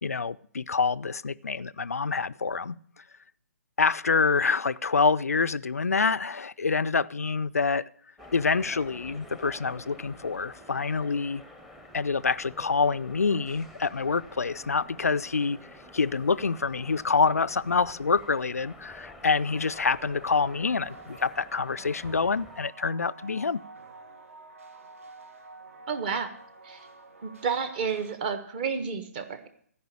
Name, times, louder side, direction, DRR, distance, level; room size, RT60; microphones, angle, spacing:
voice 1, 0.0-3.0 3.8-7.9 8.3-11.4 11.9-15.6 15.9-23.6, left 4 dB, 70° left, 0.4 m, -26 dB
sound 1, 8.2-22.7, left 1 dB, ahead, 0.8 m, -49 dB
sound 2, 19.5-28.1, right 3 dB, 60° right, 1.3 m, -49 dB
voice 2, 25.9-26.3 26.6-26.9 27.2-29.5, right 6 dB, 35° right, 1.3 m, -31 dB
14.0 x 5.4 x 8.6 m
figure-of-eight pair, 130°, 8 cm